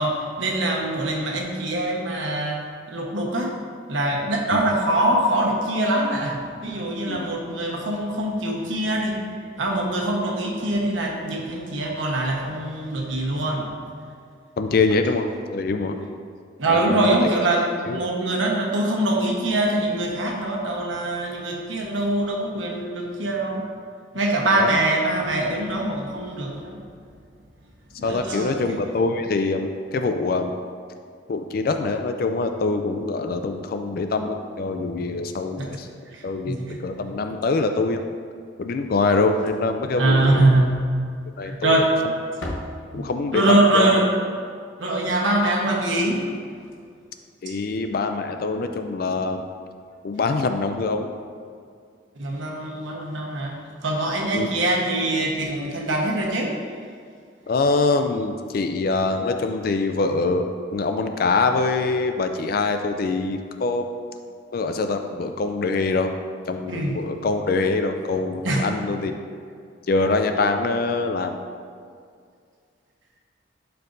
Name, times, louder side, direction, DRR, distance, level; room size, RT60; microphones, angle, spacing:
voice 1, 0.0-2.6 2.9-3.6 3.9-9.2 9.6-13.7 16.6-23.7 24.1-26.8 28.0-28.7 36.1-36.8 40.0-40.8 41.4-42.0 42.9-44.2 44.8-46.3 47.5-47.6 52.2-56.6 66.7-67.0 68.4-68.7, right 1 dB, 80° right, -1 dB, 1.1 m, -23 dB
voice 2, 14.6-16.0 16.7-17.3 17.9-18.0 24.6-24.7 28.0-30.5 31.3-35.9 36.2-38.0 38.6-40.5 41.4-41.7 42.9-44.0 47.4-49.4 50.0-51.1 54.3-54.5 57.5-63.9 64.5-66.1 66.5-69.1 69.9-71.4, left 3 dB, 50° left, 7 dB, 0.3 m, -24 dB
Slam, 39.2-39.8 40.1-40.3 40.7-40.8 41.6-42.0 42.2-43.5 46.2-46.3 46.5-46.7 48.3-48.4, left 1 dB, 85° left, 0.9 m, -38 dB
11.5 x 4.6 x 2.6 m, 2.2 s
head